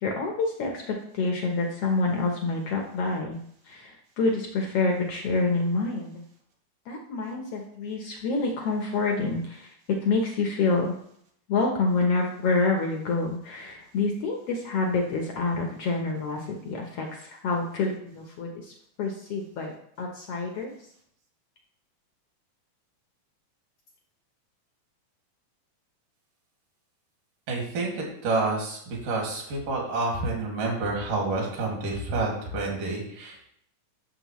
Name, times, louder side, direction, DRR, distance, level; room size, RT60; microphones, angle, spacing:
voice 1, 0.0-3.4 3.7-6.1 6.9-9.7 10.0-10.9 11.5-18.7 19.0-20.7, left 3 dB, 70° left, 1 dB, 1.4 m, -27 dB
voice 2, 27.5-33.5, right 3 dB, 70° right, -1 dB, 3.7 m, -29 dB
13.0 x 6.5 x 3.1 m, 0.69 s
omnidirectional pair, 4.0 m